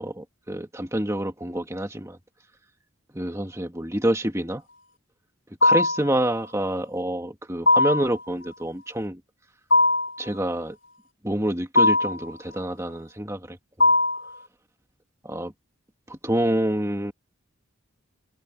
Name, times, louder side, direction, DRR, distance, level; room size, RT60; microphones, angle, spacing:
voice 1, 0.0-2.2 3.1-4.6 5.6-9.2 10.2-10.8 11.2-13.9 15.2-15.5 16.1-17.1, right 1 dB, 15° right, 2.2 m, -27 dB
sound 1, 5.6-6.1 7.7-8.1 9.7-10.2 11.7-12.2 13.8-14.3, left 2 dB, 55° left, 3.7 m, -19 dB
open air
head